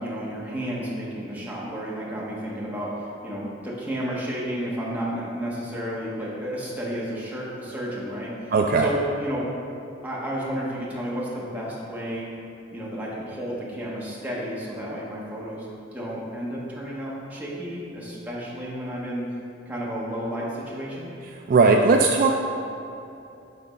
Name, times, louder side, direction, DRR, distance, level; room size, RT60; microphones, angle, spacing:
voice 1, 0.0-2.9 3.2-9.5 10.0-12.3 12.7-19.2 19.7-21.1, equal, 10° right, -6 dB, 1.2 m, -32 dB
voice 2, 8.5-8.9 21.5-22.3, right 4 dB, 45° right, 2 dB, 0.3 m, -18 dB
7.7 x 3.8 x 5.1 m, 2.8 s
head